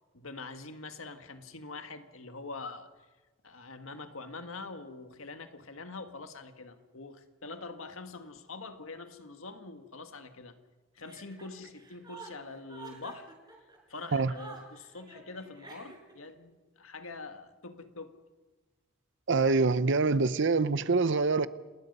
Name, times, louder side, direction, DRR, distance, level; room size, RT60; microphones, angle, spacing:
voice 1, 0.1-2.9 3.4-10.6 10.9-13.3 13.9-18.2, left 3 dB, 80° left, 1.8 m, -44 dB
Chuckle chortle, 11.0-16.3, right 4 dB, 20° right, 5.0 m, -50 dB
voice 2, 19.3-21.5, right 4 dB, 60° right, 0.8 m, -25 dB
28.5 x 20.0 x 5.5 m
head